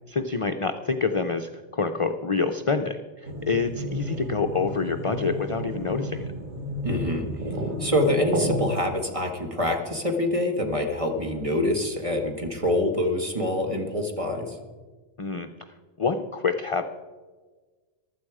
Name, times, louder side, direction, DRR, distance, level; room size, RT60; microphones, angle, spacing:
voice 1, 0.1-6.3 15.2-15.5 16.0-16.8, left 4 dB, 40° left, 7 dB, 0.5 m, -27 dB
sound 1, 3.2-8.6, equal, 45° right, 1.5 m, -31 dB
voice 2, 6.8-7.3 7.8-14.6, left 1 dB, 30° right, 3 dB, 1.8 m, -25 dB
15.0 x 12.0 x 4.9 m, 1.4 s
omnidirectional pair, 1.2 m